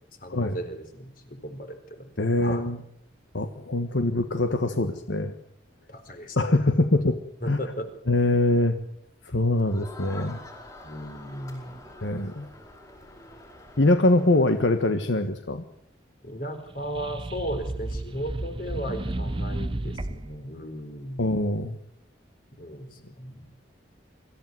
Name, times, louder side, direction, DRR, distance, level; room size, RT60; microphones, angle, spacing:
voice 1, 0.2-2.1 2.4-2.7 3.9-4.9 5.9-7.2 7.4-7.9 10.8-11.8 16.2-21.2 22.5-23.4, equal, 50° left, 7 dB, 4.3 m, -36 dB
voice 2, 2.2-2.8 3.3-5.3 6.4-7.1 7.5-7.6 8.1-8.7 9.2-10.4 12.0-12.5 13.8-15.6 21.2-21.8, left 2 dB, 80° left, 7 dB, 1.5 m, -23 dB
Crowd, 9.6-14.9, left 2 dB, 20° left, 7.7 m, -46 dB
sound 1, 16.7-20.4, right 1 dB, 30° right, 0.8 m, -32 dB
24.5 x 15.0 x 9.5 m, 0.72 s
head